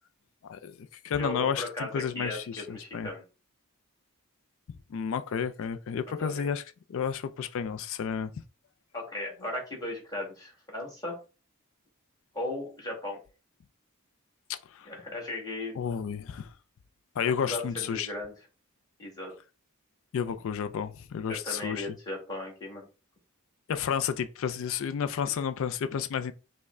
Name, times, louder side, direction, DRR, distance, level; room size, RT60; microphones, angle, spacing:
voice 1, 0.5-3.1 4.9-6.6 6.9-8.3 14.5-14.9 15.8-16.5 17.2-18.1 20.1-21.9 23.7-26.3, left 7 dB, 65° left, 0.3 m, -31 dB
voice 2, 1.2-3.2 6.1-6.4 8.9-11.2 12.3-13.2 14.8-15.8 17.4-18.3 19.0-19.3 21.3-22.9, left 1 dB, 15° left, 1.7 m, -36 dB
5.3 x 2.1 x 3.6 m
head